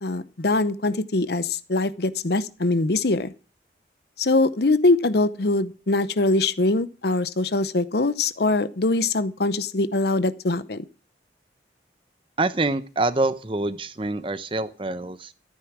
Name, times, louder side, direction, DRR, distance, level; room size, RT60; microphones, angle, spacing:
voice 1, 0.0-3.3 4.2-10.8, left 2 dB, 60° left, 16 dB, 0.8 m, -23 dB
voice 2, 12.4-15.3, right 2 dB, 30° right, 14 dB, 0.8 m, -26 dB
13.5 x 9.5 x 6.1 m, 0.37 s
head